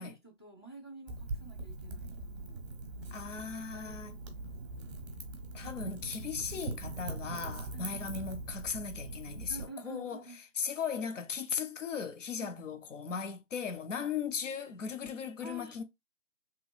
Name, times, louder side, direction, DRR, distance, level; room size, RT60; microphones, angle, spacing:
voice 1, 0.0-2.1 2.4-2.6 3.7-5.0 5.6-5.7 7.7-8.0 9.5-10.4 12.4-12.8 14.0-14.1 15.4-15.8, right 2 dB, 20° left, 0.4 m, -50 dB
Wind / Fire, 1.1-9.6, right 2 dB, 25° right, 0.6 m, -42 dB
voice 2, 3.1-4.2 5.5-10.2 10.6-15.8, left 6 dB, 75° left, 0.7 m, -37 dB
2.9 x 2.5 x 2.4 m
figure-of-eight pair, 150°, 38 cm